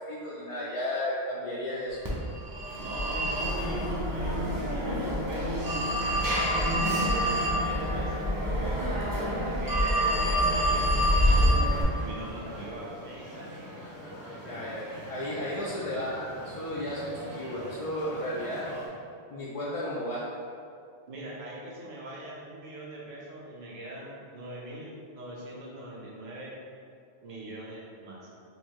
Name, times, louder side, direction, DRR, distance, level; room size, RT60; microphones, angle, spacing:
voice 1, 0.1-2.0 14.4-18.6 19.3-20.3, left 1 dB, 50° left, -7 dB, 0.4 m, -34 dB
Telephone, 2.0-11.8, equal, 25° right, 0.6 m, -26 dB
voice 2, 2.8-6.8 7.2-11.6 11.9-13.5 21.1-26.6 27.2-28.3, right 1 dB, 45° right, -5 dB, 0.8 m, -42 dB
sound 1, 10.4-18.9, equal, 70° right, 1.1 m, -43 dB
4.0 x 2.6 x 3.0 m, 2.3 s
omnidirectional pair, 1.1 m